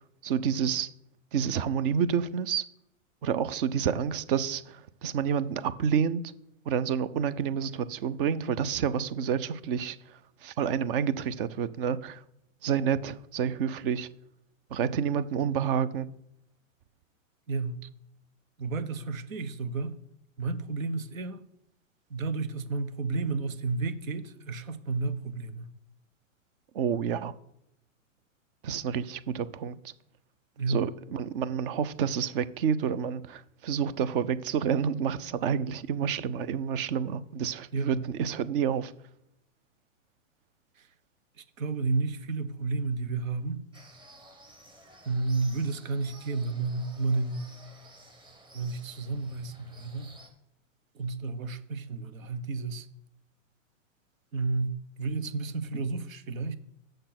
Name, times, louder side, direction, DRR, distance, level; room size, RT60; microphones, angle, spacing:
voice 1, 0.2-0.9 1.3-2.7 3.2-6.2 6.7-12.2 12.6-14.1 14.7-16.1 26.7-27.3 28.6-29.9 30.7-38.9, right 7 dB, 45° right, 0.6 m, -29 dB
voice 2, 17.5-17.8 18.6-19.9 20.4-21.4 22.1-25.7 30.6-30.8 37.7-38.0 40.8-40.9 41.4-43.6 45.0-47.5 48.5-50.1 50.9-52.9 54.3-56.5, right 3 dB, 80° right, 1.2 m, -31 dB
sound 1, 43.7-50.3, right 2 dB, 10° right, 1.3 m, -53 dB
6.6 x 6.4 x 5.9 m
hypercardioid pair, 135°, 40 cm